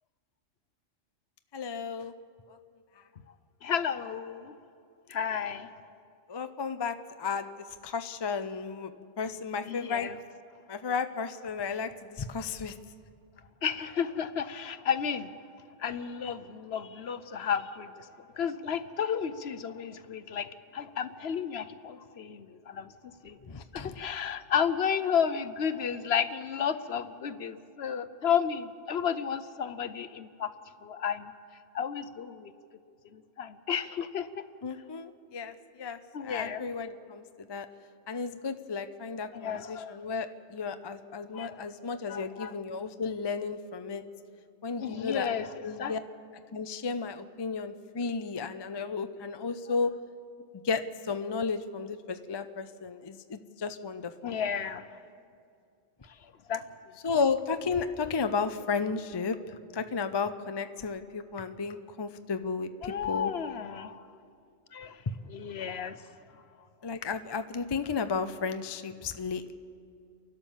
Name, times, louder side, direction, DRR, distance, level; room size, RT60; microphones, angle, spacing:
voice 1, 1.5-2.1 2.5-2.6 6.3-10.1 10.7-12.8 23.4-24.0 34.6-37.7 38.1-44.0 44.6-45.3 45.6-46.0 46.5-50.0 50.6-54.3 57.0-63.3 66.8-69.5, left 5 dB, 30° left, 9 dB, 0.4 m, -33 dB
voice 2, 3.6-4.5 5.1-5.7 9.7-10.1 13.6-15.3 15.8-18.1 18.4-22.9 23.2-23.4 23.7-30.5 30.8-31.3 31.7-32.5 33.1-34.4 36.1-36.7 39.3-39.9 41.3-41.7 42.0-42.5 44.8-45.5 45.8-45.9 54.2-54.9 56.5-56.6 62.8-64.0 64.7-65.0 65.3-66.0, left 7 dB, 60° left, 12 dB, 0.9 m, -32 dB
30.0 x 12.0 x 7.3 m, 2.4 s
omnidirectional pair, 1.3 m